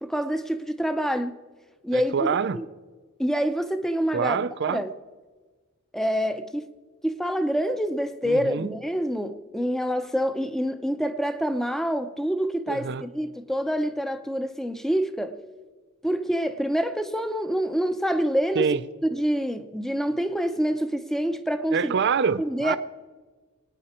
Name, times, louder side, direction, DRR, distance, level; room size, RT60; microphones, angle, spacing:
voice 1, 0.0-1.4 1.8-2.7 3.2-4.4 4.7-4.9 5.9-6.7 7.0-15.4 16.0-18.7 19.0-21.9 22.4-22.8, equal, ahead, 0.7 m, -26 dB
voice 2, 1.9-2.6 4.1-4.8 8.2-8.7 12.7-13.0 18.6-18.8 21.7-22.8, right 6 dB, 50° right, 0.5 m, -26 dB
24.5 x 9.9 x 4.4 m
head